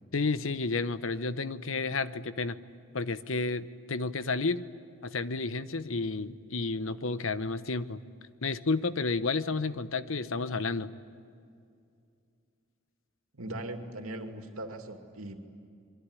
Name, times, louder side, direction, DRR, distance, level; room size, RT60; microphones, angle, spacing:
voice 1, 0.1-2.6 2.9-4.7 5.0-8.0 8.4-10.9, left 3 dB, 70° left, 13 dB, 1.0 m, -31 dB
voice 2, 13.3-15.4, right 1 dB, 80° right, 5 dB, 2.6 m, -39 dB
26.5 x 23.0 x 9.8 m, 2.4 s
head